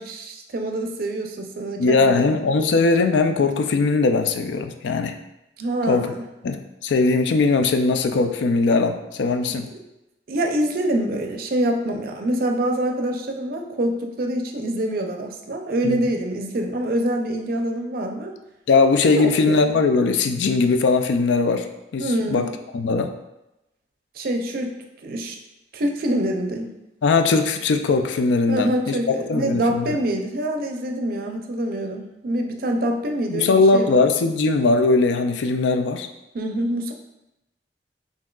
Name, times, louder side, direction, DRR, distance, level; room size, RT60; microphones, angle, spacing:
voice 1, 0.0-2.3 5.6-6.2 9.5-9.6 10.3-18.3 19.1-19.8 22.0-22.5 24.1-25.4 25.7-26.7 28.5-34.1 36.3-36.9, right 1 dB, 55° right, 4 dB, 0.5 m, -25 dB
voice 2, 1.8-5.2 5.9-6.1 6.4-9.7 15.8-16.0 18.7-21.7 21.9-23.1 27.0-30.0 33.3-36.1, left 3 dB, 85° left, 8 dB, 0.4 m, -20 dB
5.8 x 2.7 x 2.3 m, 0.93 s
head